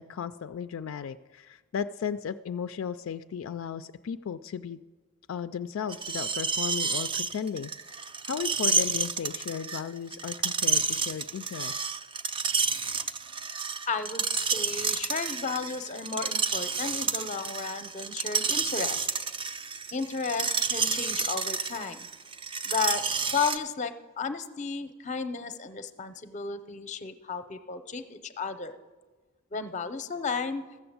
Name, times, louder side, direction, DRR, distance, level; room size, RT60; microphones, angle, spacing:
voice 1, 0.0-4.8 5.3-7.7 8.2-11.8, left 7 dB, 75° left, 10 dB, 0.3 m, -35 dB
Screech, 5.9-23.6, right 4 dB, 25° right, 0.4 m, -30 dB
voice 2, 13.9-19.1 19.9-22.1 22.6-23.0 23.3-28.8 29.5-30.6, left 5 dB, 35° left, 11 dB, 0.6 m, -33 dB
14.0 x 6.9 x 7.9 m, 1.4 s
head